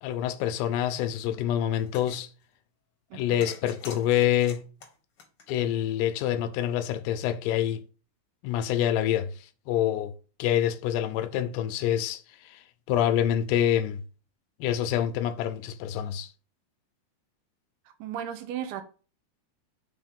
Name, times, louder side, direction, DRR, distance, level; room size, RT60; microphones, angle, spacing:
voice 1, 0.0-2.3 3.1-4.6 5.5-7.8 8.4-9.3 9.7-10.1 10.4-12.6 12.9-14.0 14.6-16.3, left 11 dB, 85° left, 2.6 m, -26 dB
sound 1, 1.7-2.3 3.4-5.9, left 5 dB, 60° left, 1.4 m, -45 dB
voice 2, 3.1-3.5 17.9-18.8, right 9 dB, 80° right, 2.5 m, -36 dB
5.8 x 4.2 x 5.2 m
omnidirectional pair, 4.8 m